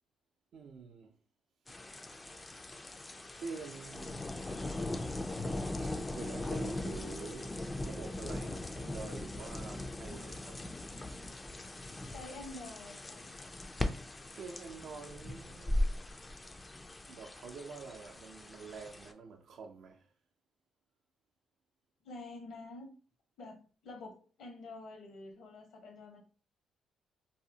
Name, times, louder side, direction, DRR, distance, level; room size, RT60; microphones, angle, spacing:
voice 1, 0.5-1.1 3.4-4.2 5.8-7.5 7.8-10.6 14.3-15.8 17.1-20.1, right 4 dB, 65° right, 0.5 m, -47 dB
sound 1, 1.7-19.1, left 1 dB, 20° left, 0.4 m, -39 dB
voice 2, 12.0-13.3 22.0-22.9 23.4-23.6 23.8-26.2, left 2 dB, 80° left, 1.1 m, -48 dB
2.7 x 2.1 x 2.7 m
cardioid pair, 90°, 0 cm